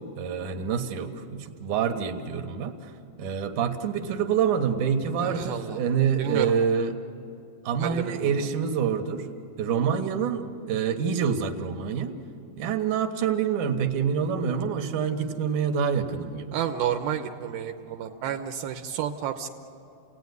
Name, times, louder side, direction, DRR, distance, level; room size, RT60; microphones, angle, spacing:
voice 1, 0.2-2.9 3.2-6.9 7.6-9.3 9.6-12.1 12.6-16.6, right 7 dB, 60° right, 6 dB, 2.5 m, -26 dB
voice 2, 5.2-5.8 6.2-6.6 7.8-8.5 16.5-19.5, right 9 dB, 80° right, 5 dB, 2.6 m, -31 dB
29.5 x 18.0 x 9.5 m, 2.8 s
omnidirectional pair, 4.4 m